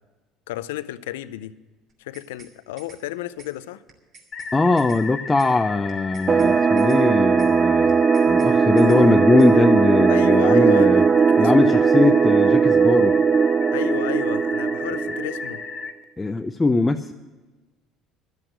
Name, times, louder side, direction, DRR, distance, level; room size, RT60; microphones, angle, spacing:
voice 1, 0.5-1.5 2.0-3.8 10.1-11.9 13.7-15.6, left 15 dB, 85° left, 15 dB, 0.5 m, -32 dB
sound 1, 1.9-2.5 2.8-3.0 3.4-3.5 3.9-4.5 4.8-5.0 5.4-5.5 5.9-6.5 6.8-7.0 7.4-7.5 7.9-8.5 8.8-9.0 9.4-9.5, right 4 dB, 55° right, 2.9 m, -48 dB
sound 2, 4.3-15.9, left 5 dB, 45° left, 1.4 m, -34 dB
voice 2, 4.5-11.0 11.4-13.2 16.2-17.1, left 3 dB, 20° left, 6 dB, 0.6 m, -20 dB
sound 3, 6.3-15.6, right 5 dB, 35° right, 0.4 m, -18 dB
12.0 x 8.0 x 9.1 m, 1.2 s
hypercardioid pair, 75°, 0 cm